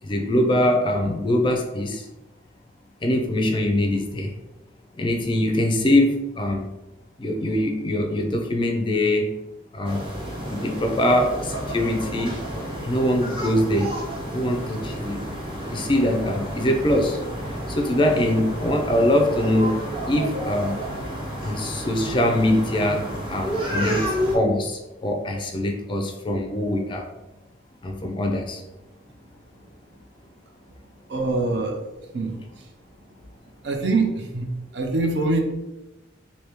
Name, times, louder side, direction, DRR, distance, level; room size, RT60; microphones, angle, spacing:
voice 1, 0.0-2.0 3.0-4.3 5.0-6.7 7.2-9.3 9.7-10.1 10.5-12.3 12.8-13.9 14.3-15.2 15.7-17.2 17.8-19.8 20.1-20.8 21.4-24.1 24.3-27.1 27.8-28.6, left 1 dB, 25° left, 3 dB, 0.4 m, -23 dB
sound 1, 9.8-24.4, equal, 30° right, 0.8 m, -31 dB
voice 2, 31.1-31.8 32.1-32.4 33.6-34.5 34.7-35.4, right 3 dB, 60° right, 4 dB, 0.5 m, -23 dB
3.4 x 2.7 x 2.9 m, 1.0 s
head